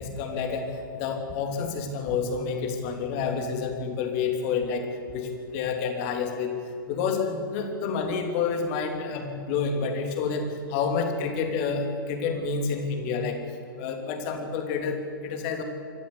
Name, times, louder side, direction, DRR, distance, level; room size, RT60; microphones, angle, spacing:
voice 1, 0.0-6.5 6.9-13.4 13.8-15.6, left 5 dB, 40° left, 5 dB, 3.2 m, -29 dB
25.5 x 13.5 x 8.2 m, 2.6 s
figure-of-eight pair, 115°, 11 cm